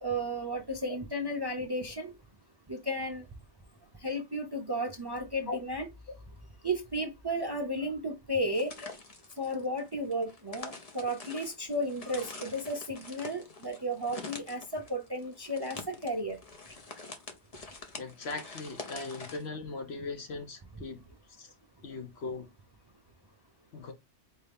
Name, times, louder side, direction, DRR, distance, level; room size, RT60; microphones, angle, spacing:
voice 1, 0.0-2.1 2.7-3.2 4.0-5.9 6.6-8.7 9.4-16.4, equal, 30° right, 0.5 m, -33 dB
sound 1, 8.5-19.4, left 3 dB, 35° left, 0.7 m, -46 dB
voice 2, 18.0-21.0 21.4-21.5 21.8-22.5 23.7-23.9, left 3 dB, 65° left, 1.1 m, -39 dB
4.5 x 2.7 x 3.4 m
omnidirectional pair, 1.2 m